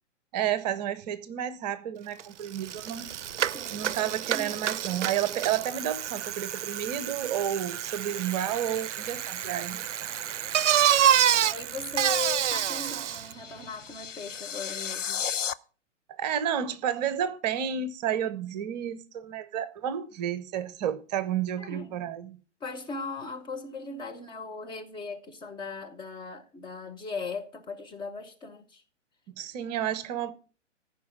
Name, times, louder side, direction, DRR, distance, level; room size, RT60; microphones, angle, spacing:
voice 1, 0.3-3.1 3.4-9.8 16.1-22.4 29.4-30.3, right 9 dB, 35° right, 1.0 m, -31 dB
Bicycle, 2.2-2.3 2.5-13.3, right 10 dB, 70° right, 0.5 m, -28 dB
voice 2, 3.5-4.8 11.1-15.2 21.6-22.1 22.6-28.8, left 4 dB, 15° left, 0.8 m, -38 dB
sound 1, 12.9-15.5, left 8 dB, 85° left, 0.7 m, -34 dB
14.5 x 5.3 x 7.4 m
figure-of-eight pair, 120°, 37 cm